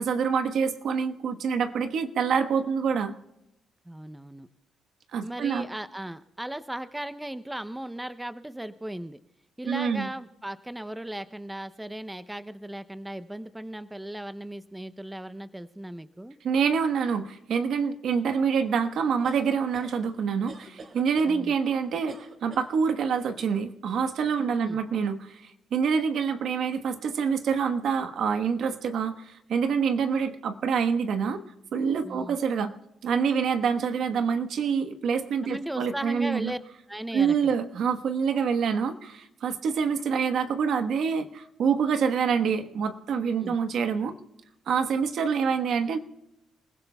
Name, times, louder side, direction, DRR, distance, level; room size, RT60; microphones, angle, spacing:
voice 1, 0.0-3.1 5.1-5.7 9.6-10.1 16.4-31.4 31.7-32.7 33.0-36.5 37.1-44.1 44.7-46.0, right 6 dB, 70° right, 8 dB, 1.2 m, -26 dB
voice 2, 3.9-4.5 5.2-9.2 9.6-16.4 21.3-21.5 24.4-24.8 32.0-32.4 35.4-36.6 36.9-37.6 43.4-43.6, right 1 dB, 10° right, 12 dB, 0.6 m, -37 dB
sound 1, 19.2-19.9 20.5-21.3 22.1-22.7, right 3 dB, 50° right, 2.6 m, -45 dB
28.5 x 16.0 x 2.3 m, 0.85 s
cardioid pair, 90°, 0 cm